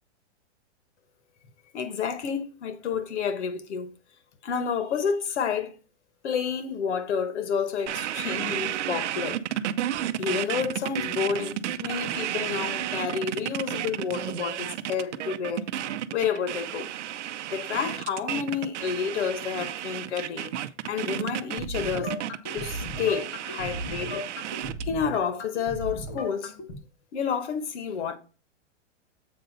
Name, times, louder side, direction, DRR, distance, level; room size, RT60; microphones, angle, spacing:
voice 1, 1.7-3.9 4.4-5.7 6.2-9.4 10.2-15.7 16.1-16.9 17.5-20.5 20.8-22.1 22.5-24.2 24.8-26.5 27.1-28.2, left 7 dB, 65° left, 1.2 m, -30 dB
sound 1, 7.9-24.9, right 12 dB, 70° right, 0.7 m, -32 dB
sound 2, 21.6-26.8, left 1 dB, 15° left, 0.4 m, -36 dB
7.8 x 5.3 x 3.9 m
supercardioid pair, 175°, 37 cm